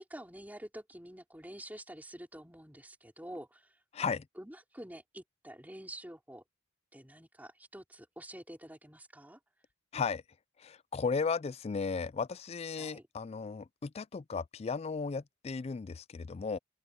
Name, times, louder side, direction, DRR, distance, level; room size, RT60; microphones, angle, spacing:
voice 1, 0.0-3.6 4.4-6.4 6.9-9.4 12.8-13.0, right 1 dB, 10° right, 3.2 m, -48 dB
voice 2, 3.9-4.2 9.9-10.2 10.6-16.6, left 5 dB, 30° left, 0.3 m, -35 dB
open air
head